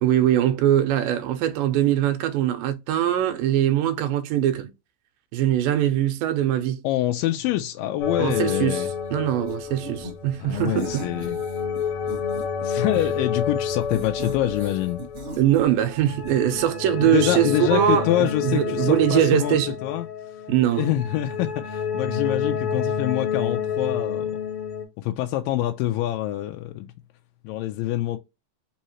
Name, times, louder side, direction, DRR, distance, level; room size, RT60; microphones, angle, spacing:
voice 1, 0.0-4.7 5.3-6.8 8.2-8.8 9.1-11.1 15.4-19.8 20.5-20.9, right 11 dB, 85° right, 2.3 m, -22 dB
voice 2, 6.8-8.9 10.4-11.4 12.6-15.0 17.0-20.4 20.7-24.3 25.0-26.9 27.4-28.2, left 13 dB, 80° left, 2.2 m, -26 dB
sound 1, 8.0-24.8, left 7 dB, 60° left, 2.4 m, -29 dB
sound 2, 9.5-10.1 10.5-12.5 12.9-13.2 13.7-16.0 16.2-16.7, right 1 dB, 60° right, 0.7 m, -37 dB
5.5 x 2.8 x 3.0 m
omnidirectional pair, 4.0 m